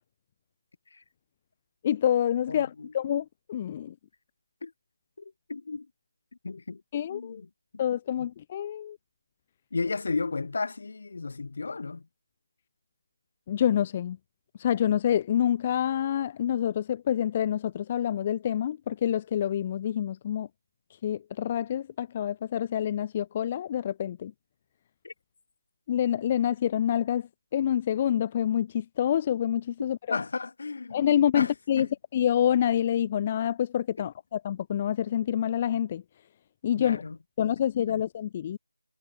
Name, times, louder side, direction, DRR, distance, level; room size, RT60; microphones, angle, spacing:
voice 1, 1.8-3.9 6.9-7.4 7.8-9.0 13.5-14.2 14.6-20.5 21.0-24.3 25.9-30.2 30.9-36.0 36.6-37.0 37.4-38.6, left 10 dB, 20° left, 0.4 m, -27 dB
voice 2, 2.5-2.9 4.6-4.7 5.2-5.9 6.4-6.8 7.1-7.5 7.7-7.8 8.2-8.3 9.7-12.0 25.0-25.1 30.1-31.1 31.3-31.9 34.0-34.1 36.8-37.2 37.9-38.0, left 4 dB, 45° left, 5.0 m, -34 dB
figure-of-eight pair, 165°, 0 cm